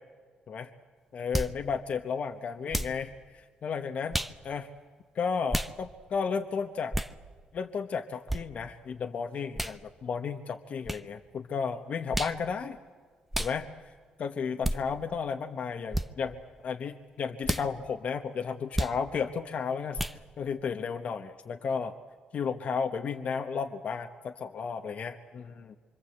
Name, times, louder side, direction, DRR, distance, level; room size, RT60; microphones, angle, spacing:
voice 1, 1.1-4.2 4.4-4.7 5.1-6.9 7.5-12.8 13.4-13.7 14.2-20.0 20.4-22.0 22.3-25.8, left 6 dB, 55° left, 5 dB, 1.2 m, -33 dB
sound 1, 1.3-1.6 2.7-3.0 4.1-4.4 5.5-5.7 6.9-7.1 8.3-8.4 9.6-9.8 10.9-11.0 12.1-12.4 13.3-13.6 14.6-14.8 15.9-16.1 17.4-17.7 18.7-19.0 20.0-20.2, right 1 dB, 5° right, 0.9 m, -30 dB
25.5 x 25.0 x 8.1 m, 1.5 s
cardioid pair, 115°, 3 cm